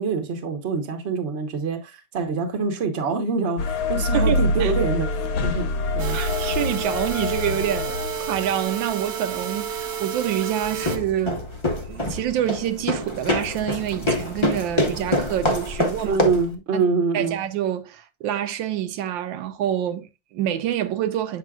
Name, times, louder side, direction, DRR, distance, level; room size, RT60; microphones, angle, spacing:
voice 1, 0.0-5.1 5.4-5.7 5.9-6.2 16.0-17.4, right 4 dB, 40° right, 1.2 m, -25 dB
sound 1, 3.6-8.6, left 2 dB, 65° left, 1.3 m, -25 dB
voice 2, 4.1-4.7 6.1-11.4 11.8-16.2 16.7-16.8 17.1-21.4, right 11 dB, 80° right, 1.3 m, -27 dB
sound 2, 6.0-11.0, right 8 dB, 65° right, 1.2 m, -30 dB
sound 3, 10.6-16.5, left 1 dB, 25° left, 0.6 m, -26 dB
7.5 x 5.8 x 2.3 m
omnidirectional pair, 2.1 m